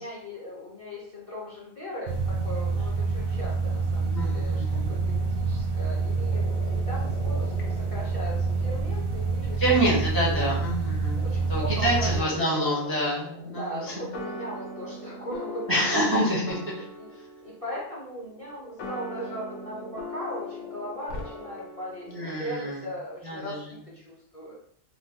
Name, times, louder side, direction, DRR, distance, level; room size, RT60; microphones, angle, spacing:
voice 1, 0.0-6.5 6.9-9.6 10.3-10.6 11.2-12.9 13.6-15.7 16.2-16.4 16.7-17.1 17.4-24.6, equal, 35° left, -5 dB, 0.5 m, -38 dB
sound 1, 2.1-12.2, right 4 dB, 85° right, 1.1 m, -27 dB
voice 2, 4.1-5.0 9.6-13.9 15.7-16.8 22.1-22.9 23.2-23.8, right 1 dB, 35° right, -4 dB, 0.3 m, -27 dB
sound 2, 5.2-8.9 9.7-22.4, left 3 dB, 70° left, 1.0 m, -47 dB
sound 3, 11.9-22.5, left 2 dB, 90° left, 1.1 m, -41 dB
2.9 x 2.2 x 3.5 m, 0.64 s
omnidirectional pair, 1.4 m